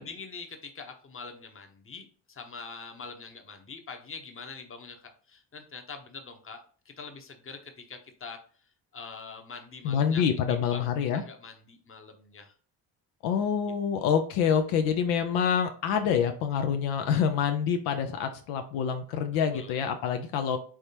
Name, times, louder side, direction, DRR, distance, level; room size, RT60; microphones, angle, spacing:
voice 1, 0.0-8.4 8.9-10.2 10.5-12.5 14.0-14.1 19.5-19.7, left 4 dB, 25° left, 5 dB, 0.9 m, -44 dB
voice 2, 9.8-11.2 13.2-20.6, left 7 dB, 85° left, 7 dB, 0.6 m, -26 dB
3.5 x 3.2 x 2.8 m, 0.43 s
hypercardioid pair, 55°, 49 cm